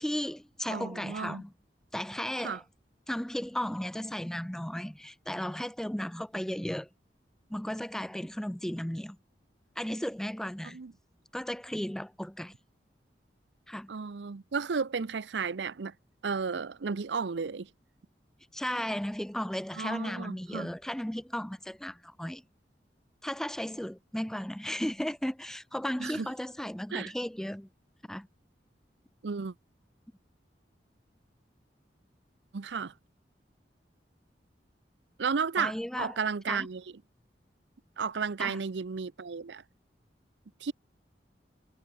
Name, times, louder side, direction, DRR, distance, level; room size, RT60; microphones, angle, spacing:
voice 1, 0.0-1.5 1.9-2.6 3.1-6.9 7.5-9.2 9.8-10.8 11.3-12.5 13.7-13.9 18.5-22.4 23.2-27.7 28.1-28.3 35.6-36.2 36.5-36.7 38.4-38.6, equal, 5° left, 0.4 m, -35 dB
voice 2, 0.7-1.4 2.4-2.6 10.7-10.9 13.9-15.9 16.2-17.7 19.8-20.7 26.0-26.3 26.9-27.1 29.2-29.5 32.5-32.9 35.2-36.8 38.0-39.6 40.6-40.7, right 5 dB, 85° right, 0.6 m, -33 dB
head